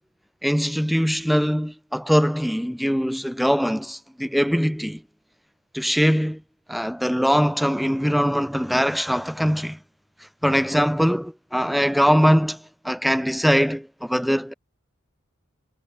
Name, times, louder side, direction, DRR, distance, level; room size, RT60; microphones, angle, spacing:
voice 1, 0.4-5.0 5.7-6.4 6.7-9.8 10.4-14.5, equal, ahead, 0.9 m, -22 dB
head